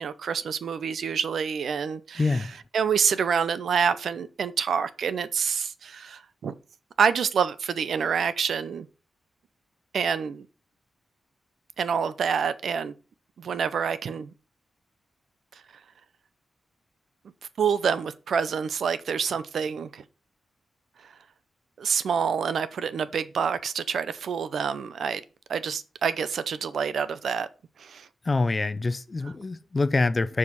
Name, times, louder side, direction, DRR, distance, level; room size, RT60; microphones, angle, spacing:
voice 1, 0.0-2.5 2.7-6.5 7.0-8.9 9.9-10.5 11.8-12.9 13.4-14.3 17.6-20.0 21.0-21.1 21.8-25.2 25.5-27.5 27.8-28.1, right 6 dB, 70° right, 0.7 m, -27 dB
voice 2, 2.2-2.5 28.2-30.4, left 3 dB, 25° left, 0.5 m, -25 dB
7.1 x 4.9 x 5.4 m
wide cardioid pair, 175°, 0 cm